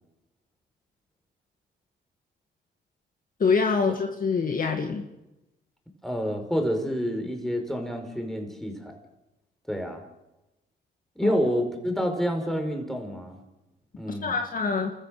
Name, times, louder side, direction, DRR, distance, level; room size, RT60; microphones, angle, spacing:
voice 1, 3.4-5.0 11.2-11.3 14.2-14.9, left 5 dB, 45° left, 4 dB, 2.1 m, -25 dB
voice 2, 6.0-8.9 9.7-10.0 11.2-13.4 14.0-14.4, equal, ahead, 4 dB, 5.3 m, -28 dB
29.5 x 14.5 x 6.8 m, 0.96 s
cardioid pair, 90°, 20 cm